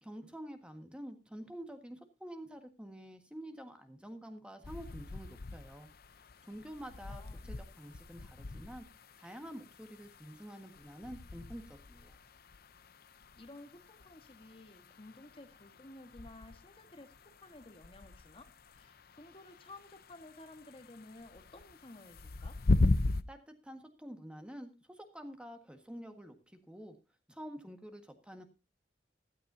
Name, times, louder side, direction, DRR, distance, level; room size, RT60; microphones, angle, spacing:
voice 1, 0.0-5.9 6.4-8.8 9.2-12.2 23.3-26.9 27.3-28.4, equal, 5° right, 6 dB, 1.6 m, -48 dB
sound 1, 4.6-23.2, left 2 dB, 60° left, 0.7 m, -39 dB
voice 2, 7.1-7.5 13.1-22.6, left 2 dB, 30° left, 7 dB, 1.6 m, -54 dB
15.5 x 13.5 x 2.8 m, 0.27 s
head